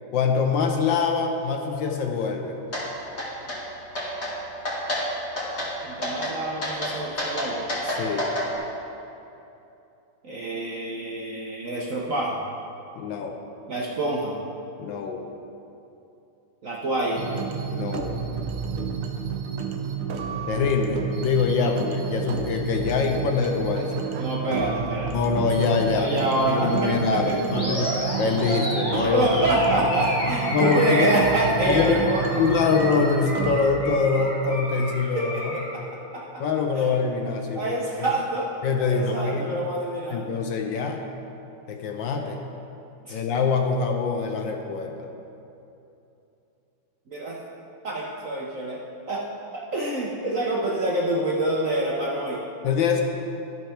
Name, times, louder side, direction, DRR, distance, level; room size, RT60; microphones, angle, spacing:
voice 1, 0.1-2.5 7.8-8.3 13.0-13.4 14.8-15.3 17.7-18.2 20.5-24.1 25.1-29.3 29.7-29.9 30.5-31.2 31.6-32.0 32.4-35.6 36.4-38.1 38.6-39.7 40.1-41.1 41.7-42.4 43.1-44.9 52.6-53.0, left 5 dB, 70° left, 3 dB, 1.3 m, -24 dB
sound 1, 2.7-2.8 3.2-3.6 3.9-4.3 4.6-5.0 5.4-5.7 6.0-6.3 6.6-8.5, left 1 dB, 30° left, 2.0 m, -28 dB
voice 2, 5.8-7.7 10.2-12.4 13.7-14.3 16.6-17.2 21.6-21.8 24.1-25.1 25.6-27.4 29.1-32.3 35.1-35.8 36.1-36.4 36.7-36.9 37.5-38.5 38.9-40.2 43.0-43.2 47.1-47.4 47.8-49.2 49.5-52.4, right 1 dB, 55° right, -3 dB, 0.9 m, -26 dB
sound 2, 17.2-33.6, right 6 dB, 80° right, 1.5 m, -30 dB
Animal, 27.5-35.7, equal, 15° left, 2.3 m, -30 dB
13.0 x 4.5 x 5.7 m, 2.8 s
omnidirectional pair, 2.3 m